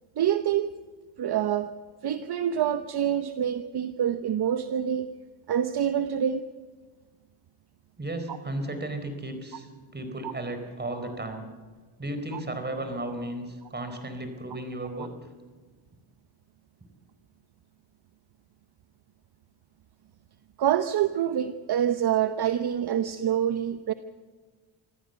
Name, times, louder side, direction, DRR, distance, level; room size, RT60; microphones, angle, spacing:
voice 1, 0.2-0.7 1.2-1.7 2.0-5.1 5.5-6.4 8.3-8.4 10.2-10.3 12.3-12.4 20.6-23.9, right 9 dB, 50° right, 10 dB, 1.0 m, -26 dB
voice 2, 8.0-9.7 9.9-11.4 12.0-15.1, right 1 dB, 20° right, 7 dB, 4.3 m, -34 dB
25.5 x 15.0 x 8.1 m, 1.4 s
cardioid pair, 110°, 48 cm